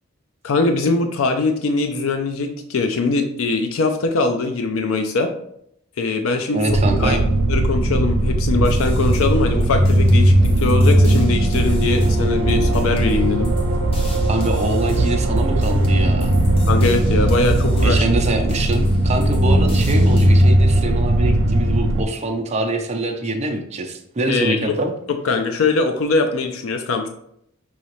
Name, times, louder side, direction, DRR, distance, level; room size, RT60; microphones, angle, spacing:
voice 1, 0.4-5.3 6.0-6.6 7.0-7.2 7.5-13.5 16.7-18.0 24.3-24.7 25.2-27.1, left 3 dB, 70° left, 6 dB, 0.4 m, -21 dB
voice 2, 6.5-7.2 14.3-16.4 17.8-24.9, right 2 dB, 30° right, 3 dB, 0.6 m, -24 dB
sound 1, 6.7-22.0, right 1 dB, 80° right, 0.7 m, -17 dB
sound 2, 8.6-20.3, left 1 dB, 25° left, 0.8 m, -37 dB
5.4 x 2.9 x 3.1 m, 0.72 s
head